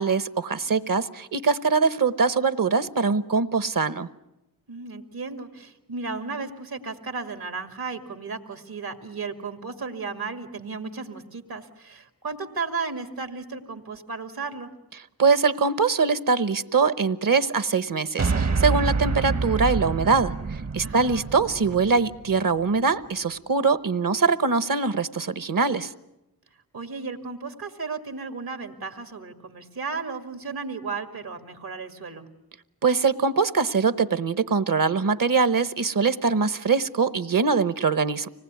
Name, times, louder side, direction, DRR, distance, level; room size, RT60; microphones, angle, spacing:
voice 1, 0.0-4.1 15.2-25.9 32.8-38.3, right 5 dB, 65° right, 13 dB, 1.1 m, -23 dB
voice 2, 4.7-14.7 20.8-21.3 26.7-32.3, right 4 dB, 80° right, 6 dB, 2.3 m, -34 dB
sound 1, 18.2-22.6, right 4 dB, 45° right, 0.9 m, -27 dB
25.5 x 19.0 x 9.5 m, 0.93 s
cardioid pair, 55°, 36 cm